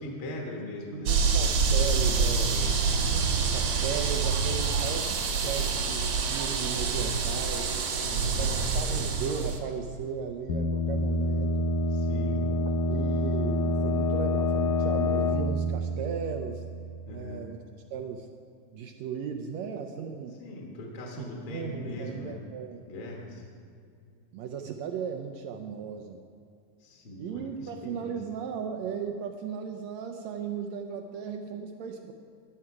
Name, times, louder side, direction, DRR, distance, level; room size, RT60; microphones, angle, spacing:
voice 1, 0.0-1.2 2.4-2.9 8.0-8.6 11.9-12.5 17.1-17.5 20.4-22.4 22.9-23.4 26.8-28.2, left 1 dB, 50° left, -1 dB, 1.8 m, -40 dB
voice 2, 0.9-2.5 3.0-7.8 8.4-11.7 12.3-12.6 12.9-16.6 17.1-17.6 17.9-18.3 18.7-20.4 20.8-20.9 21.2-22.8 24.3-26.2 27.2-32.1, right 7 dB, 80° right, 5 dB, 1.6 m, -36 dB
sound 1, 1.1-9.6, right 5 dB, 60° right, 1.9 m, -26 dB
sound 2, 10.5-17.1, left 1 dB, 75° left, 1.9 m, -27 dB
13.5 x 10.5 x 4.8 m, 2.4 s
omnidirectional pair, 3.7 m